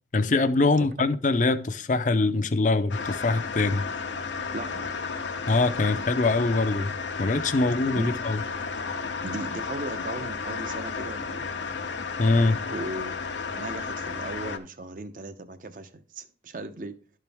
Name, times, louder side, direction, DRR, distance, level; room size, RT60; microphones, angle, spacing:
voice 1, 0.1-3.8 5.5-6.9 7.2-8.4 12.2-12.6, left 3 dB, 45° left, 0.5 m, -23 dB
sound 1, 2.9-14.6, left 5 dB, 90° left, 0.8 m, -33 dB
voice 2, 4.5-4.9 7.9-8.1 9.2-11.5 12.7-16.9, right 2 dB, 50° right, 0.7 m, -37 dB
12.0 x 4.5 x 3.5 m
head